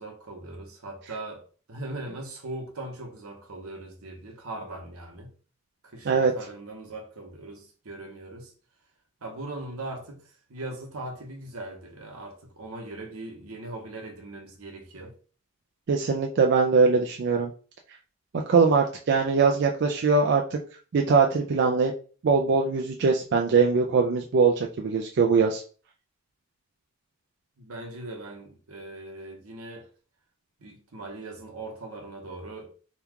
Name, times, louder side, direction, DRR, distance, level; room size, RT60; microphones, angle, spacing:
voice 1, 0.0-1.4 1.7-5.3 5.8-8.5 9.2-15.1 27.6-29.9 30.6-32.7, right 2 dB, 85° right, 0.9 m, -40 dB
voice 2, 15.9-17.5 18.5-20.6 20.9-21.9 22.2-25.6, right 4 dB, 50° right, 0.3 m, -22 dB
2.9 x 2.3 x 3.5 m
head